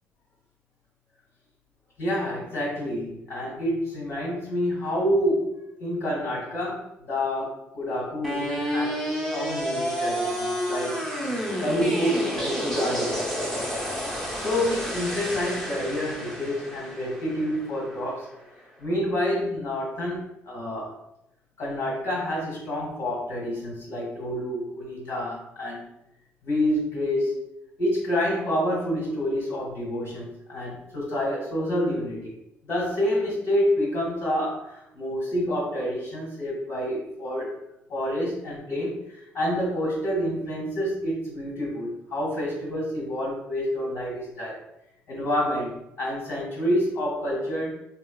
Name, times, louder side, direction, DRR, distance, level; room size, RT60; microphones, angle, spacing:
voice 1, 2.0-11.1 11.6-13.2 14.4-18.3 18.8-20.9 21.6-25.9 26.4-27.4 27.8-32.3 32.7-37.5 37.9-44.6 45.1-47.8, equal, 70° left, -5 dB, 1.3 m, -28 dB
sound 1, 8.2-18.3, equal, 5° left, 0.7 m, -30 dB
3.2 x 2.2 x 2.3 m, 0.88 s
cardioid pair, 95°, 5 cm